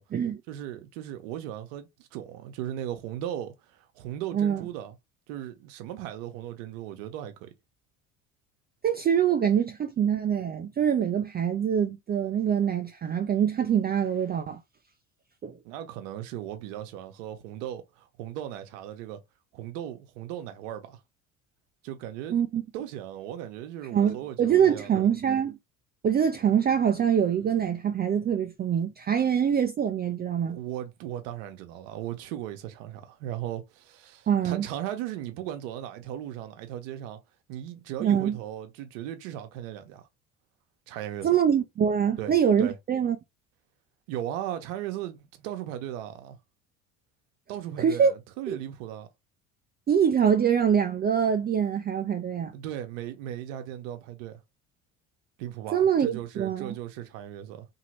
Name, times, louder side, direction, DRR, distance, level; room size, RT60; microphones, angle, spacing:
voice 1, 0.5-5.0 5.3-7.5 15.6-19.2 19.5-21.0 21.8-22.4 22.7-25.1 30.5-37.2 37.5-40.1 40.9-41.3 42.2-42.3 42.6-42.7 44.1-46.4 47.5-49.1 52.5-54.4 55.4-57.7, right 11 dB, 70° right, 0.8 m, -37 dB
voice 2, 8.8-14.6 15.4-15.5 22.3-22.6 23.9-25.6 26.0-30.6 34.3-34.7 38.0-38.4 41.2-43.2 47.8-48.1 48.5-48.6 49.9-52.5 55.7-56.7, right 8 dB, 25° right, 0.4 m, -24 dB
2.9 x 2.8 x 2.9 m
hypercardioid pair, 60°, 40 cm